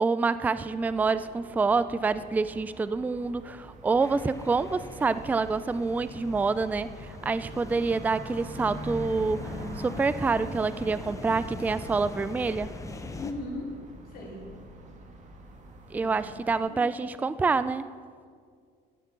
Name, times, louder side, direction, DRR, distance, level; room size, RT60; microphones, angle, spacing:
voice 1, 0.0-6.9 7.2-9.4 9.8-12.7 15.9-17.9, right 4 dB, 10° right, 15 dB, 0.3 m, -27 dB
sound 1, 0.7-16.6, right 2 dB, 45° right, 1.6 m, -51 dB
sound 2, 1.2-17.1, right 1 dB, 85° right, 1.8 m, -48 dB
sound 3, 4.0-13.3, left 3 dB, 20° left, 0.9 m, -41 dB
voice 2, 13.1-13.7 14.0-14.4 15.9-17.0, left 2 dB, 60° left, -4 dB, 3.2 m, -39 dB
13.0 x 6.6 x 7.3 m, 2.1 s
cardioid pair, 110°, 17 cm